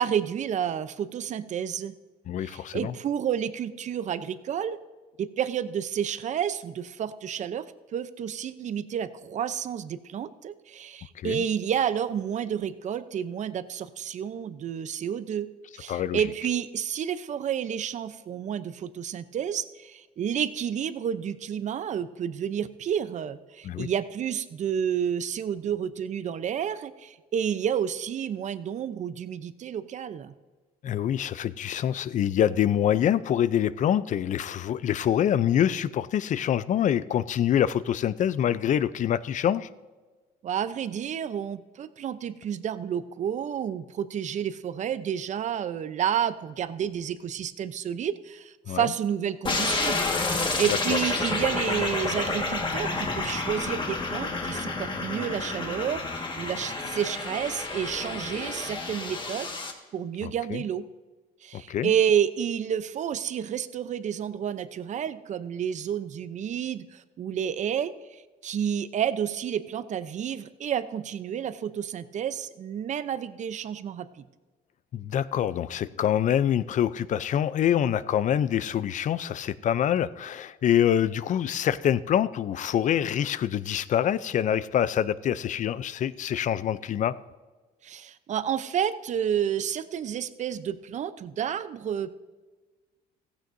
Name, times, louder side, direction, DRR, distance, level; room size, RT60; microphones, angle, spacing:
voice 1, 0.0-1.9 2.4-4.8 5.2-7.7 7.9-30.3 40.4-59.5 59.9-60.9 61.4-74.2 87.8-92.3, right 9 dB, 45° right, 0.6 m, -30 dB
voice 2, 2.3-2.9 11.2-11.4 15.9-16.2 23.6-23.9 30.8-39.7 48.7-48.9 50.9-51.0 60.2-60.6 61.5-61.9 74.9-87.2, left 10 dB, 45° left, 0.5 m, -25 dB
sound 1, 49.4-59.7, left 3 dB, 30° left, 1.6 m, -30 dB
15.5 x 15.5 x 2.6 m
cardioid pair, 110°, 17 cm